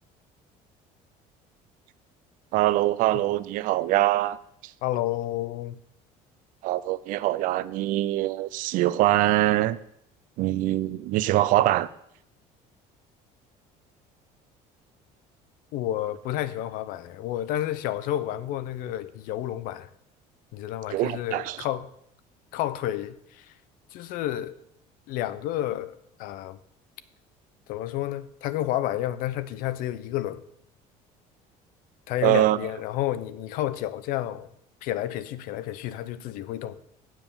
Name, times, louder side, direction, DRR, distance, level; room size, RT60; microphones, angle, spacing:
voice 1, 2.5-4.4 4.6-4.7 6.6-9.8 10.4-11.9 20.9-21.6 32.2-32.6, right 15 dB, 60° right, 0.5 m, -23 dB
voice 2, 4.8-5.8 15.7-19.9 20.5-21.9 22.5-23.5 23.9-24.6 25.1-26.6 27.7-30.4 32.1-34.5 34.8-36.8, left 13 dB, 70° left, 0.6 m, -30 dB
7.8 x 7.4 x 7.0 m
cardioid pair, 160°, 15 cm